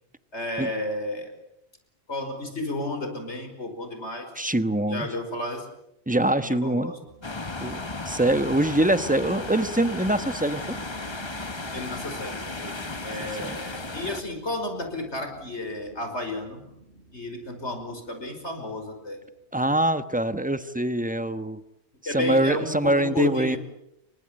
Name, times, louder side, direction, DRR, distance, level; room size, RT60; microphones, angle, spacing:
voice 1, 0.3-1.3 2.1-4.3 4.9-5.7 6.3-7.0 11.7-12.7 13.0-16.6 17.1-19.2 22.1-23.6, left 1 dB, 85° left, 6 dB, 5.7 m, -32 dB
voice 2, 4.4-5.1 6.1-6.9 7.6-10.8 13.4-13.5 19.5-21.6 22.1-23.6, right 1 dB, 10° right, 11 dB, 1.1 m, -24 dB
sound 1, 7.1-19.1, right 2 dB, 75° right, 5.3 m, -47 dB
sound 2, 7.2-14.2, left 3 dB, 25° left, 1.2 m, -35 dB
29.0 x 24.5 x 7.8 m, 0.82 s
omnidirectional pair, 1.1 m